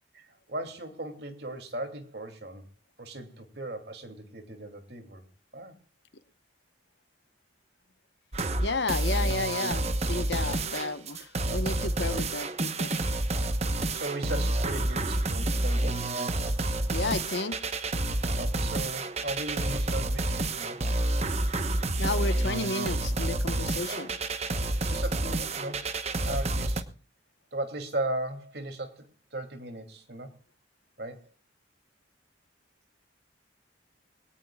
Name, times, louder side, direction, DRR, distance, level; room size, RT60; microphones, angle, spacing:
voice 1, 0.1-2.7 3.0-5.3 5.5-5.7 13.9-16.1 18.4-20.8 23.9-24.1 24.8-25.9 26.2-26.9 27.5-30.3 31.0-31.3, right 1 dB, 60° right, 5 dB, 2.8 m, -37 dB
sound 1, 8.3-26.8, right 2 dB, 35° right, 1.0 m, -29 dB
voice 2, 8.6-12.9 16.9-17.6 22.0-24.1, left 3 dB, 70° left, 11 dB, 1.1 m, -32 dB
22.0 x 18.0 x 2.4 m, 0.34 s
head